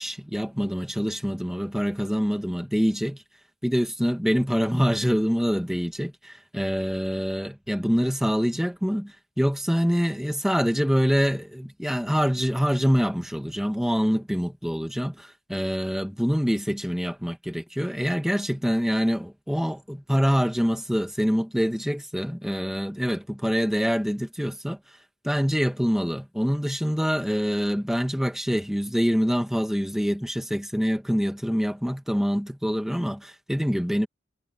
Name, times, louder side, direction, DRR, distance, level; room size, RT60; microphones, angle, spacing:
voice 1, 0.0-3.2 3.6-24.8 25.2-34.1, equal, ahead, 1.7 m, -25 dB
head